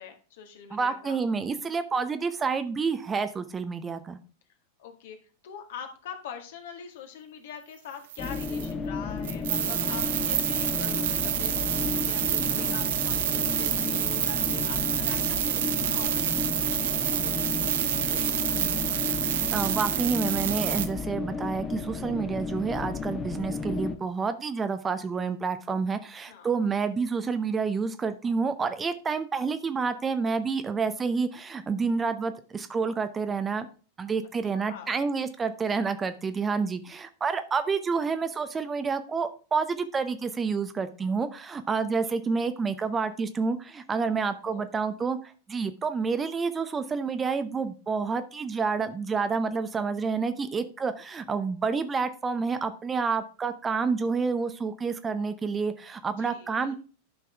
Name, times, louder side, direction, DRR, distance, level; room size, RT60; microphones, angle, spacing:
voice 1, 0.0-1.2 4.8-5.2 5.4-18.9 26.3-26.7 34.5-34.9 44.0-44.1 44.4-44.7 56.2-56.8, left 7 dB, 55° left, 5 dB, 1.8 m, -44 dB
voice 2, 0.7-4.2 19.5-33.7 34.0-56.7, right 5 dB, 20° right, 10 dB, 0.8 m, -29 dB
sound 1, 8.1-8.7 9.2-20.9, right 11 dB, 60° right, 0.9 m, -28 dB
sound 2, 8.2-24.0, left 5 dB, 20° left, 1.3 m, -33 dB
11.5 x 6.0 x 3.5 m, 0.37 s
figure-of-eight pair, 90°, 0 cm